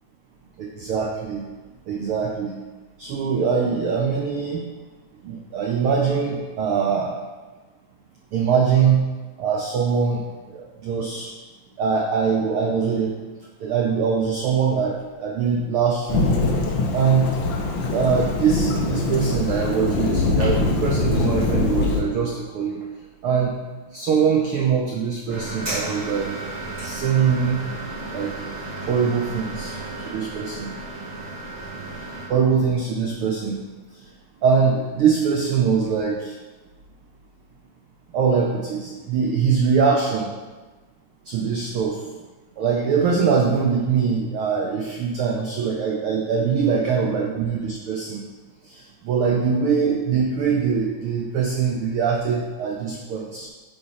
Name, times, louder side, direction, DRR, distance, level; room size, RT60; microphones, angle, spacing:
voice 1, 0.6-1.5 1.9-2.5 3.0-4.6 5.2-7.1 8.3-9.1 9.4-10.2 10.5-11.3 11.8-13.2 13.6-16.3 16.9-17.3 17.9-22.8 23.2-23.5 23.9-26.3 26.8-27.6 28.1-28.3 28.8-29.8 30.0-30.7 32.3-33.6 34.4-36.3 38.1-40.3 41.3-42.0 42.6-48.2 48.6-53.5, right 6 dB, 85° right, -1 dB, 1.2 m, -22 dB
Thunderstorm / Rain, 16.1-22.0, left 3 dB, 75° left, 1.1 m, -23 dB
sound 1, 25.3-32.3, right 2 dB, 40° right, 0.6 m, -33 dB
9.7 x 4.3 x 4.3 m, 1.3 s
omnidirectional pair, 3.4 m